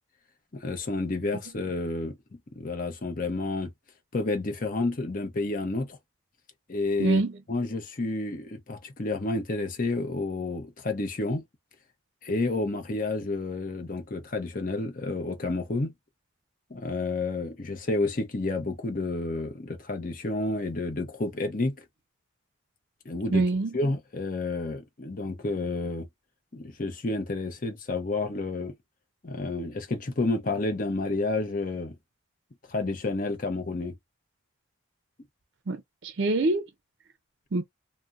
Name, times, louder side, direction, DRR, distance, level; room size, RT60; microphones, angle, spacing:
voice 1, 0.5-2.2 2.5-3.7 4.1-6.0 6.7-7.2 7.5-11.4 12.2-15.9 16.7-21.7 23.1-23.4 23.7-26.1 26.5-28.7 29.2-32.0 32.7-33.9, left 2 dB, 40° left, 0.7 m, -30 dB
voice 2, 7.0-7.3 23.3-23.7 35.7-36.7 37.5-37.6, right 2 dB, 55° right, 0.5 m, -25 dB
2.6 x 2.1 x 3.4 m
head